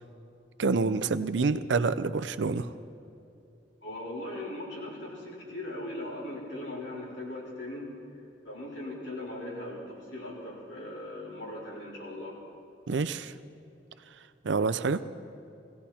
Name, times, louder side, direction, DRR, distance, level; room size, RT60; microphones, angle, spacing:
voice 1, 0.6-2.7 12.9-13.3 14.4-15.0, right 4 dB, 85° right, 13 dB, 0.6 m, -27 dB
voice 2, 3.8-7.9 8.4-12.4, left 1 dB, 85° left, -5 dB, 4.2 m, -39 dB
18.5 x 16.5 x 4.3 m, 2.7 s
head